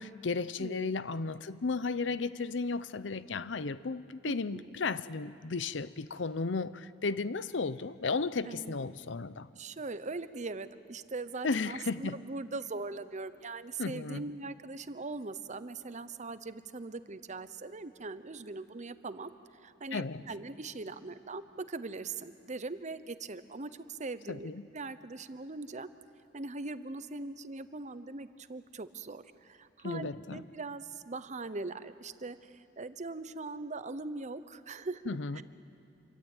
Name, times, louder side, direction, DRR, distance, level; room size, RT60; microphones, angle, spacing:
voice 1, 0.0-9.5 11.4-12.2 13.8-14.2 19.9-20.2 24.3-24.7 29.8-30.4 35.1-35.4, left 4 dB, 75° left, 0.7 m, -34 dB
voice 2, 0.6-0.9 4.3-4.7 8.4-8.8 9.5-25.9 26.3-35.0 35.3-35.4, right 3 dB, 40° right, 0.9 m, -41 dB
27.0 x 23.5 x 9.1 m
head